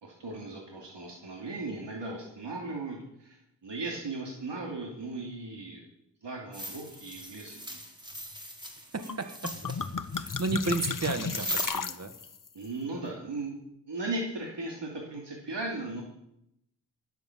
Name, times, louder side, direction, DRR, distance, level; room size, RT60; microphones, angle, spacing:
voice 1, 0.0-5.8 6.2-7.8 12.5-13.5 13.9-16.0, right 2 dB, 75° right, -1 dB, 2.9 m, -37 dB
sound 1, 6.5-11.6, equal, 10° right, 3.4 m, -40 dB
voice 2, 8.9-9.8 10.1-12.1, right 3 dB, 35° right, 8 dB, 1.7 m, -33 dB
sound 2, 9.1-9.2 9.4-12.5, left 5 dB, 45° left, 1.1 m, -34 dB
19.0 x 8.2 x 7.4 m, 0.81 s
cardioid pair, 50°, 43 cm